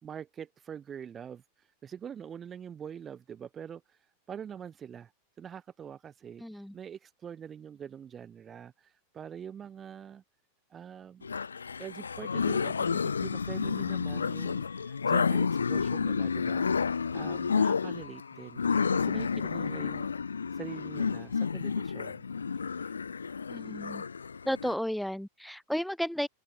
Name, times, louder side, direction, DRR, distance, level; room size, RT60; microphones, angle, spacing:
voice 1, 0.0-4.0 4.3-5.1 5.4-6.4 6.7-10.2 10.7-11.3 11.8-18.6 18.9-20.1 20.5-22.2 22.8-22.9, right 8 dB, 25° right, 1.9 m, -44 dB
voice 2, 6.4-6.7 23.5-24.0 24.4-26.3, equal, ahead, 0.9 m, -33 dB
sound 1, 11.2-24.7, left 5 dB, 75° left, 1.0 m, -30 dB
figure-of-eight pair, 90°, 0 cm